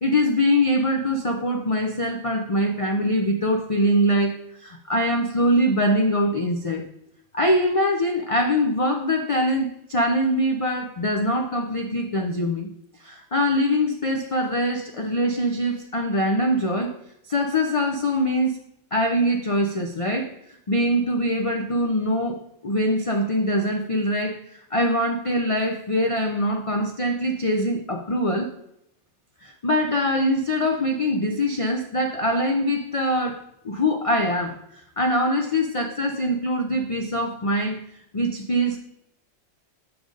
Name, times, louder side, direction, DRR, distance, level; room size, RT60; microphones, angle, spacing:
voice 1, 0.0-6.8 7.3-12.7 13.0-17.0 17.3-18.6 18.9-20.3 20.7-28.5 29.4-37.8 38.1-38.8, equal, 65° left, 2 dB, 0.3 m, -23 dB
6.8 x 5.2 x 3.8 m, 0.76 s
omnidirectional pair, 1.5 m